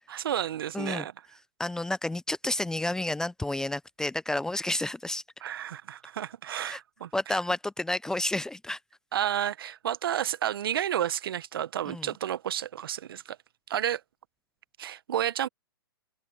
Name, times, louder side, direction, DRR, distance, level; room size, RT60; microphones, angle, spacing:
voice 1, 0.1-1.1 5.4-7.4 9.1-13.4 13.7-14.0 14.8-15.5, right 10 dB, 65° right, 0.9 m, -31 dB
voice 2, 0.7-1.1 1.6-5.2 6.7-6.8 7.1-8.8 11.9-12.1, left 1 dB, 5° left, 0.5 m, -30 dB
open air
hypercardioid pair, 120°, 13 cm